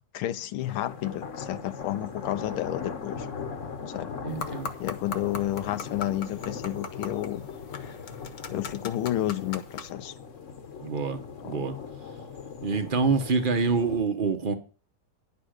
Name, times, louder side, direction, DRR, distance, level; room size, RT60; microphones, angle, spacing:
voice 1, 0.1-3.3 3.9-4.2 4.5-7.5 8.5-10.1 11.4-11.7, left 13 dB, 80° left, 1.5 m, -31 dB
sound 1, 0.6-14.0, left 6 dB, 45° left, 1.2 m, -39 dB
voice 2, 4.2-4.7 10.8-11.8 12.6-14.5, right 4 dB, 45° right, 0.7 m, -26 dB
sound 2, 4.3-9.9, left 5 dB, 60° left, 1.6 m, -40 dB
10.0 x 6.8 x 6.4 m
omnidirectional pair, 2.3 m